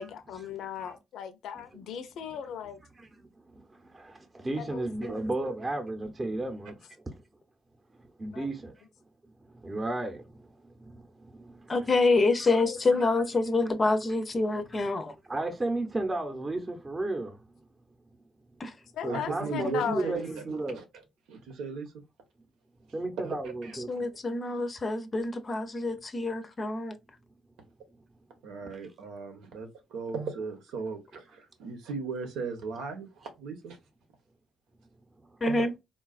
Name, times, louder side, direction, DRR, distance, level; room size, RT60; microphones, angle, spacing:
voice 1, 0.0-2.8 4.6-5.2 8.3-8.5 12.6-12.8 18.9-20.2, left 8 dB, 80° left, 0.5 m, -37 dB
voice 2, 2.9-7.2 8.0-8.9 9.2-11.9 12.4-12.5 13.0-13.1 14.7-17.5 19.0-20.8 22.9-23.9 28.7-28.8 35.2-35.4, right 2 dB, 25° right, 0.7 m, -34 dB
voice 3, 11.7-15.1 18.6-18.7 23.9-27.0 35.4-35.7, left 3 dB, 35° left, 0.5 m, -26 dB
voice 4, 19.1-20.8 21.3-21.9 23.2-23.8 24.1-24.2 28.4-33.8 35.5-35.6, right 4 dB, 90° right, 0.9 m, -37 dB
3.8 x 2.3 x 2.4 m
cardioid pair, 90°, 0 cm